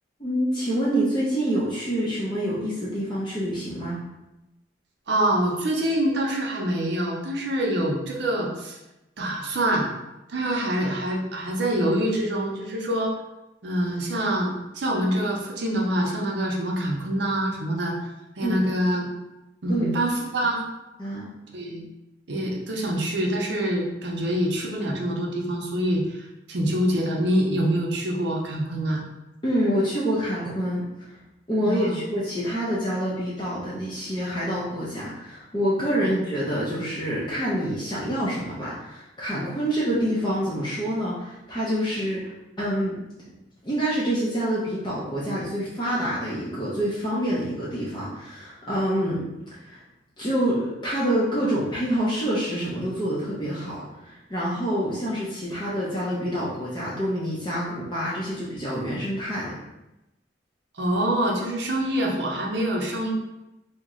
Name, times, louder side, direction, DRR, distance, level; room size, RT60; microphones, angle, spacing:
voice 1, 0.2-4.0 18.4-18.6 19.7-20.0 21.0-21.3 29.4-30.9 31.5-42.3 42.6-43.0 43.6-49.2 49.5-49.8 50.2-59.5, equal, 25° left, -8 dB, 0.5 m, -27 dB
voice 2, 5.1-8.8 9.2-9.9 10.3-13.1 13.6-18.0 18.4-19.1 19.6-20.7 21.5-21.8 22.3-29.0 31.6-32.0 36.0-36.1 60.8-63.1, right 1 dB, 65° right, -1 dB, 0.6 m, -25 dB
2.9 x 2.1 x 3.6 m, 0.96 s
head